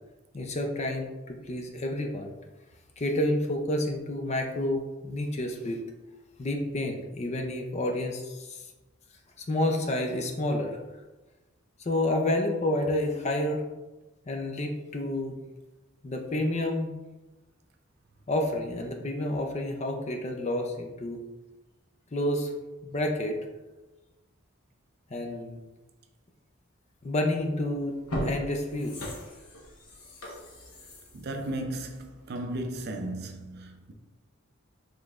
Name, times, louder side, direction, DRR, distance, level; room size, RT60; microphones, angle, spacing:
voice 1, 0.3-2.3 3.0-5.8 6.4-8.6 9.4-10.8 11.8-13.6 14.3-15.4 16.0-16.9 18.3-21.2 22.1-22.5 22.8-23.4 25.1-25.6 27.0-29.0, left 1 dB, 30° left, 0.4 m, -29 dB
sound 1, 27.3-27.5 27.9-32.6 33.0-33.1, equal, 85° left, 0.9 m, -38 dB
voice 2, 31.1-33.9, right 1 dB, 50° right, 0.5 m, -35 dB
5.1 x 3.2 x 2.4 m
head